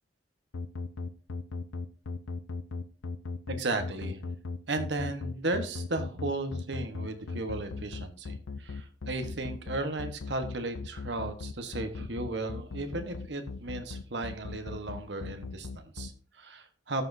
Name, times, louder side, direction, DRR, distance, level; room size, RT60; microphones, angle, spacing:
sound 1, 0.5-16.1, left 3 dB, 85° left, 0.6 m, -37 dB
voice 1, 3.5-4.2 4.7-17.0, right 2 dB, 65° right, 7 dB, 1.2 m, -35 dB
14.0 x 6.1 x 2.7 m, 0.41 s
head